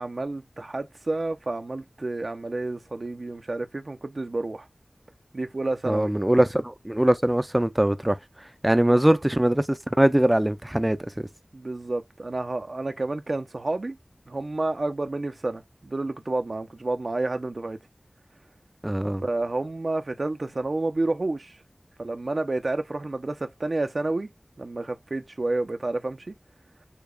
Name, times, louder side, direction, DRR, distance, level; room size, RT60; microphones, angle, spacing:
voice 1, 0.0-4.7 5.3-6.1 11.5-14.0 14.3-17.8 19.2-21.6 22.0-24.3 24.6-26.3, right 2 dB, 70° right, 0.6 m, -30 dB
voice 2, 5.9-8.2 8.6-11.3 18.8-19.2, right 1 dB, 20° right, 0.6 m, -22 dB
6.8 x 2.9 x 2.4 m
wide cardioid pair, 45°, 0 cm